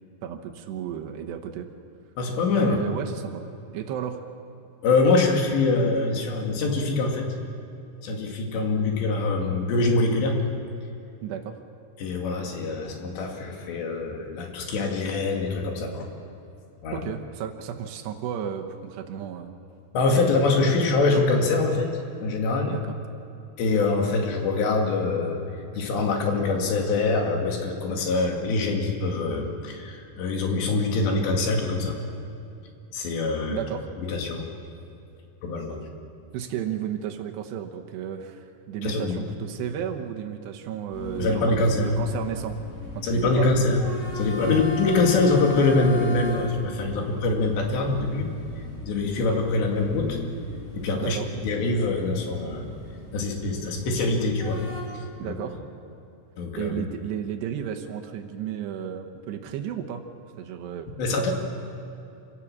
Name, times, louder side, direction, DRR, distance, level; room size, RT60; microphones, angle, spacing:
voice 1, 0.2-1.7 2.6-3.4 3.7-4.2 8.8-8.9 11.2-11.6 16.9-19.5 22.6-23.0 33.5-33.9 36.3-42.6 43.0-43.5 44.4-44.7 51.0-51.3 55.2-55.6 56.5-60.0 60.4-61.3, right 9 dB, 80° right, 4 dB, 3.2 m, -33 dB
voice 2, 2.2-2.8 4.8-7.3 8.0-10.4 12.0-16.1 16.8-17.0 19.9-21.9 22.2-22.7 23.6-25.4 25.7-32.0 32.9-33.6 34.1-34.5 35.4-35.8 38.8-39.2 41.2-42.0 43.0-43.8 44.1-48.3 48.9-50.2 50.7-51.2 51.4-52.7 53.1-54.6 54.9-55.3 56.4-56.9 61.0-61.3, left 3 dB, 80° left, 1 dB, 4.5 m, -24 dB
sound 1, 40.9-54.8, left 3 dB, 60° left, 5.3 m, -37 dB
27.0 x 17.0 x 7.3 m, 2.8 s
omnidirectional pair, 4.9 m